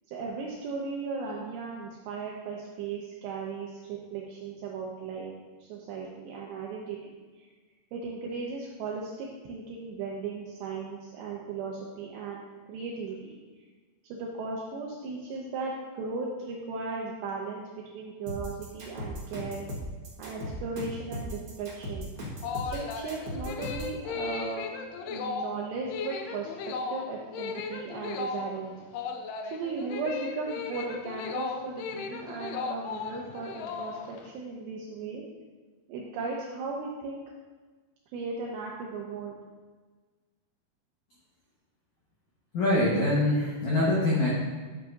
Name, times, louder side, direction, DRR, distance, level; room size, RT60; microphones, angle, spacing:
voice 1, 0.1-5.3 5.6-7.0 7.4-7.5 7.9-13.4 14.1-17.6 17.9-19.7 20.2-22.1 22.7-24.7 25.0-28.7 29.5-35.2 35.9-37.2 38.1-39.4, right 4 dB, 80° right, -2 dB, 2.8 m, -36 dB
sound 1, 18.3-23.9, equal, 60° right, 1.3 m, -37 dB
sound 2, 22.2-34.3, left 5 dB, 85° left, 2.3 m, -36 dB
voice 2, 42.5-44.3, left 1 dB, 60° left, -6 dB, 1.9 m, -24 dB
11.0 x 8.1 x 2.7 m, 1.4 s
omnidirectional pair, 5.5 m